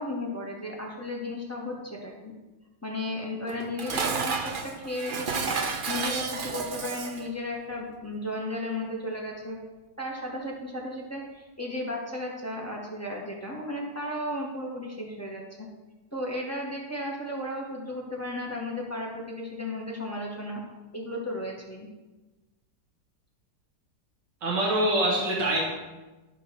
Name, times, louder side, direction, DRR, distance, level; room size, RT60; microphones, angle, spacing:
voice 1, 0.0-2.3 2.8-5.5 5.9-9.6 10.0-15.7 16.1-20.6 20.9-21.9, left 1 dB, 10° left, -3 dB, 1.7 m, -34 dB
Dishes pots and pans, 3.5-7.3, right 4 dB, 60° right, 0.5 m, -31 dB
voice 2, 24.4-25.6, right 1 dB, 80° right, -4 dB, 2.3 m, -24 dB
12.0 x 4.9 x 6.1 m, 1.2 s
omnidirectional pair, 1.9 m